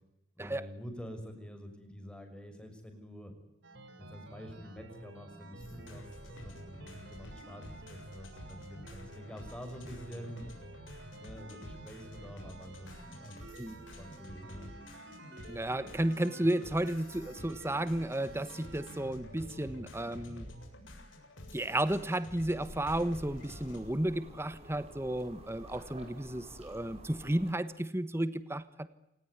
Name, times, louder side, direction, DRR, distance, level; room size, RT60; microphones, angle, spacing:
voice 1, 0.4-3.3 4.0-10.6 11.2-14.7, equal, 5° left, 6 dB, 5.9 m, -47 dB
sound 1, 3.6-20.7, right 2 dB, 65° right, 5.0 m, -51 dB
sound 2, 5.6-23.8, left 1 dB, 75° left, 7.1 m, -50 dB
voice 2, 15.5-20.4 21.5-28.9, right 1 dB, 15° right, 13 dB, 1.3 m, -33 dB
sound 3, 22.4-27.5, right 1 dB, 35° right, 6.2 m, -50 dB
28.0 x 19.0 x 9.5 m, 0.85 s
head